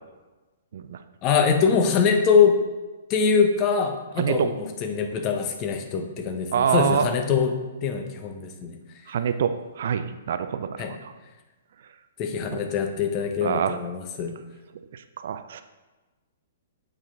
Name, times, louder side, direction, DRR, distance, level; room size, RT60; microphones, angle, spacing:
voice 1, 1.2-2.7 3.1-8.8 10.8-11.0 12.2-14.3, left 6 dB, 30° left, 5 dB, 0.8 m, -23 dB
voice 2, 4.2-4.5 6.5-7.1 9.1-11.1 12.5-12.6 13.4-13.8 15.2-15.6, right 7 dB, 55° right, 10 dB, 0.4 m, -25 dB
7.5 x 4.5 x 3.8 m, 1.2 s
figure-of-eight pair, 115°, 0 cm